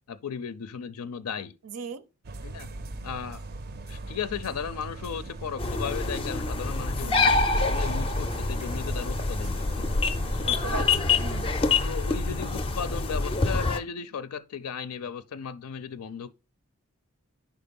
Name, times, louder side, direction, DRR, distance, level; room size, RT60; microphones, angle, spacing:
voice 1, 0.1-1.6 2.4-2.7 3.0-3.4 3.9-9.9 10.7-11.1 11.7-16.3, left 7 dB, 85° left, 0.4 m, -36 dB
voice 2, 1.6-2.0 7.0-7.4 10.4-10.9 11.2-11.5, right 5 dB, 85° right, 0.6 m, -37 dB
sound 1, 2.2-11.4, right 2 dB, 45° right, 0.4 m, -40 dB
sound 2, 5.6-13.8, left 3 dB, 25° left, 0.4 m, -26 dB
5.1 x 4.4 x 5.2 m
head